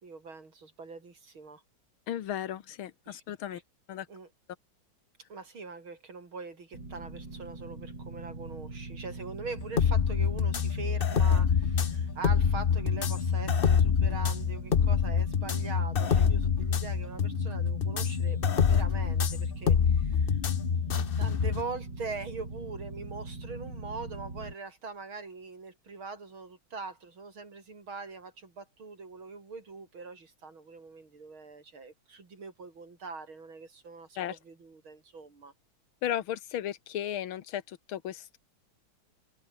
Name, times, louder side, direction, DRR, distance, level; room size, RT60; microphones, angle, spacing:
voice 1, 0.0-1.6 3.1-3.2 3.5-3.6 4.1-4.3 5.3-20.4 21.2-35.5, right 4 dB, 80° right, 5.1 m, -42 dB
voice 2, 2.1-3.6 3.9-4.1 34.2-34.4 36.0-38.4, left 11 dB, 85° left, 2.0 m, -35 dB
sound 1, 6.7-24.5, right 2 dB, 55° right, 6.3 m, -42 dB
sound 2, 9.6-21.6, left 7 dB, 45° left, 0.7 m, -26 dB
omnidirectional pair, 2.2 m